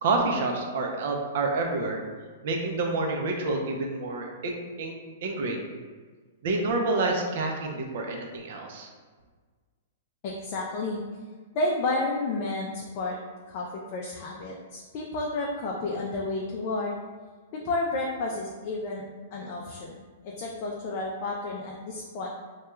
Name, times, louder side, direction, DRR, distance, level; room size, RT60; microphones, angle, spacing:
voice 1, 0.0-2.0 2.4-4.9 5.2-5.7 6.4-8.9, right 3 dB, 65° right, 2 dB, 0.5 m, -28 dB
voice 2, 10.2-11.0 11.5-13.2 13.5-16.9 17.5-19.0 19.3-22.3, left 2 dB, 45° left, -2 dB, 0.4 m, -31 dB
2.2 x 2.2 x 2.9 m, 1.5 s
hypercardioid pair, 135°, 0 cm